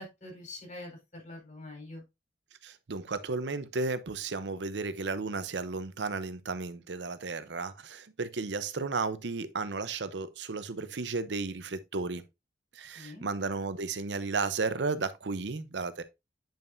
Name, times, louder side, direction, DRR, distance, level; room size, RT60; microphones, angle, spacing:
voice 1, 0.0-2.0 12.9-13.3, left 2 dB, 45° left, 4.2 m, -45 dB
voice 2, 2.6-12.2 12.7-16.0, right 4 dB, 90° right, 0.7 m, -34 dB
8.9 x 5.5 x 2.6 m
head